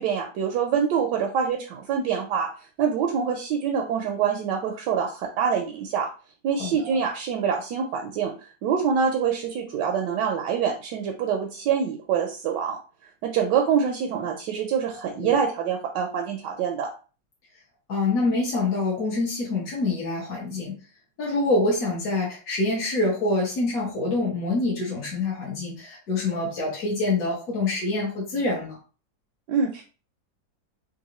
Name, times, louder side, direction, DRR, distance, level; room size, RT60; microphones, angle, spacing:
voice 1, 0.0-2.5 2.8-6.1 6.4-8.3 8.6-12.8 13.2-16.9 29.5-29.8, right 7 dB, 75° right, 2 dB, 1.2 m, -25 dB
voice 2, 6.6-7.0 15.2-15.3 17.9-20.7 21.2-28.8, left 2 dB, 55° left, -5 dB, 1.4 m, -26 dB
3.8 x 2.5 x 2.9 m, 0.36 s
omnidirectional pair, 2.0 m